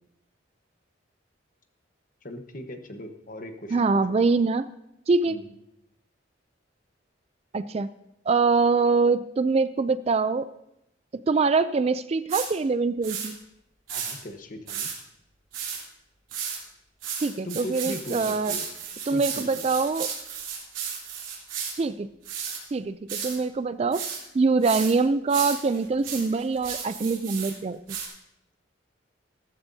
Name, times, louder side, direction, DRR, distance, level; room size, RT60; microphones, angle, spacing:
voice 1, 2.2-4.2 5.3-5.5 13.9-14.9 17.4-18.7 19.1-19.4, left 1 dB, 45° left, 6 dB, 1.1 m, -39 dB
voice 2, 3.7-4.7 5.1-5.4 7.5-7.9 8.3-10.5 11.1-13.4 17.2-18.5 19.1-20.1 21.8-22.1 22.7-24.0 24.3-28.0, right 4 dB, 35° right, 14 dB, 0.3 m, -24 dB
sound 1, 12.3-12.5 13.0-13.3 13.9-14.1 14.7-15.0 15.5-15.8 16.3-16.6 17.0-21.7 22.2-22.6 23.1-23.4 23.9-24.2 24.6-24.9 25.3-27.5 27.9-28.1, right 7 dB, 85° right, 3.5 m, -34 dB
14.5 x 14.0 x 2.7 m, 0.82 s
head